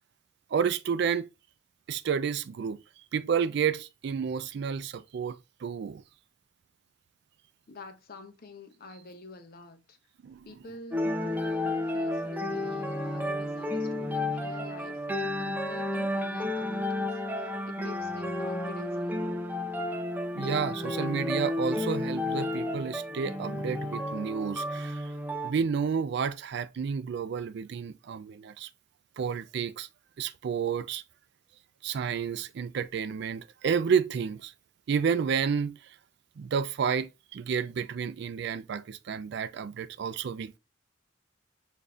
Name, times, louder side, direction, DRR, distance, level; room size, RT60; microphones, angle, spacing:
voice 1, 0.5-1.3 1.9-2.8 3.1-6.0 10.2-10.5 20.3-25.1 25.4-28.7 29.2-29.9 30.2-31.0 31.8-34.5 34.9-35.8 36.4-40.6, right 6 dB, 65° right, 0.4 m, -30 dB
voice 2, 7.7-10.0 10.5-19.4, left 2 dB, 55° left, 0.7 m, -47 dB
sound 1, 10.9-25.5, left 1 dB, 10° right, 0.5 m, -32 dB
6.7 x 2.6 x 2.4 m
head